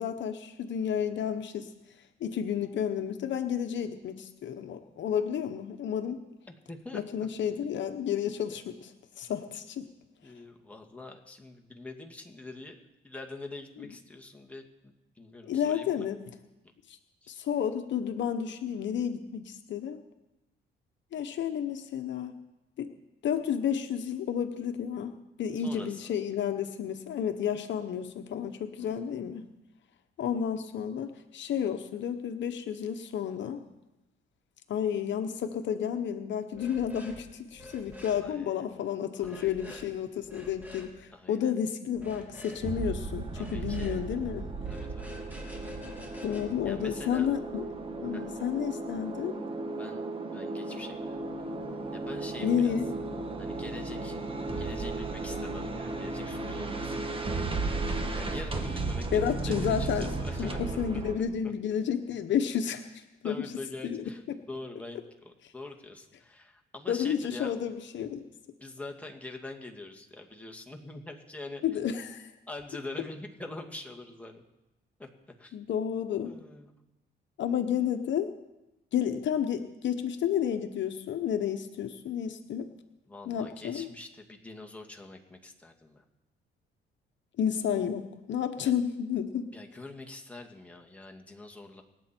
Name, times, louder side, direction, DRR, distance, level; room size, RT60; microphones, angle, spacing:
voice 1, 0.0-1.7 2.2-6.2 6.9-9.9 15.4-16.2 16.9-17.0 17.3-20.0 21.1-22.4 22.8-22.9 23.2-29.4 30.2-33.6 34.7-44.5 46.2-47.7 48.0-49.4 52.4-52.8 59.1-60.1 60.4-63.4 63.8-64.0 66.9-68.2 71.6-72.3 75.5-76.4 77.4-78.3 78.9-82.7 83.2-83.9 87.4-89.5, left 8 dB, 70° left, 7 dB, 1.0 m, -31 dB
voice 2, 6.7-7.0 10.2-16.1 17.2-17.3 25.6-26.0 28.8-29.0 38.2-38.8 39.2-39.8 41.1-41.5 43.3-44.0 44.7-45.2 46.6-47.3 48.1-48.2 49.8-50.0 50.3-51.2 51.9-52.7 53.4-54.2 54.6-57.1 58.1-60.7 63.2-64.2 64.5-67.5 68.6-71.6 72.5-74.4 75.0-75.1 75.4-75.6 76.2-76.7 83.1-86.0 89.5-91.8, left 2 dB, 5° left, 1 dB, 2.1 m, -44 dB
sound 1, 36.5-37.2 37.5-38.2 39.2-39.9 40.2-40.9 41.9-42.6 43.3-44.0 44.6-47.3, left 1 dB, 10° right, 3.7 m, -47 dB
sound 2, 42.6-61.2, right 3 dB, 25° right, 1.8 m, -35 dB
25.5 x 8.6 x 4.5 m, 0.97 s
cardioid pair, 90°, 20 cm